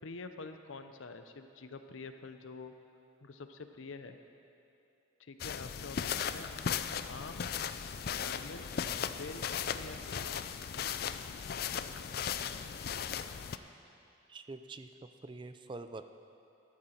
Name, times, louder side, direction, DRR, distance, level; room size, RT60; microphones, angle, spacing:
voice 1, 0.0-2.7 3.2-4.2 5.2-6.5 7.0-7.5 8.1-8.6 9.2-10.4, left 3 dB, 90° left, 8 dB, 0.7 m, -46 dB
sound 1, 5.4-13.6, left 7 dB, 50° left, 0.4 m, -37 dB
voice 2, 14.3-14.9 15.2-16.0, right 3 dB, 25° right, 9 dB, 0.4 m, -45 dB
13.0 x 12.5 x 4.4 m, 2.7 s
head